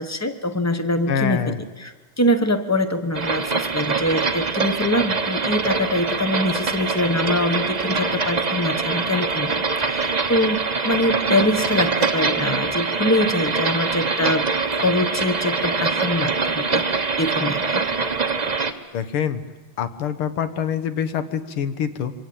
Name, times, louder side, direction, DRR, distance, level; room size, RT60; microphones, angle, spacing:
voice 1, 0.0-17.8, left 1 dB, 15° left, 9 dB, 0.6 m, -24 dB
voice 2, 1.1-1.6 18.9-19.4 19.8-22.1, left 8 dB, 75° left, 11 dB, 2.2 m, -25 dB
sound 1, 3.1-18.7, right 4 dB, 30° right, 0.8 m, -24 dB
26.5 x 24.5 x 8.7 m, 1.3 s
omnidirectional pair, 2.4 m